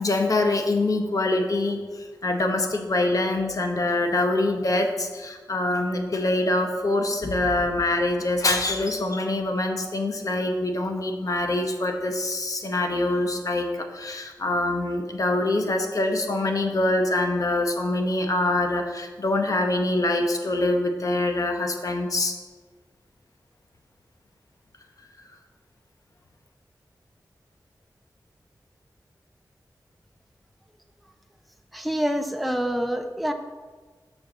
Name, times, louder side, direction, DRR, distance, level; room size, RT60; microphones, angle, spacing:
voice 1, 0.0-1.8 2.2-22.4, left 2 dB, 50° left, 4 dB, 0.9 m, -24 dB
voice 2, 31.7-33.3, equal, ahead, 5 dB, 0.5 m, -26 dB
6.6 x 4.4 x 6.6 m, 1.3 s
wide cardioid pair, 90°, 7 cm